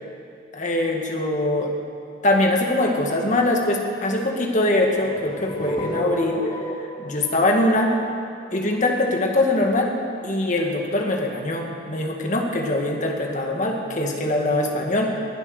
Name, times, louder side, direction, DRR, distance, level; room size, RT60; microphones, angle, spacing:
voice 1, 0.5-1.7 2.2-6.5 6.8-7.9 8.5-9.9 10.2-15.1, left 1 dB, 40° left, 1 dB, 2.0 m, -22 dB
sound 1, 4.8-8.9, right 1 dB, 25° left, 1.4 m, -32 dB
20.5 x 10.5 x 6.6 m, 2.3 s
head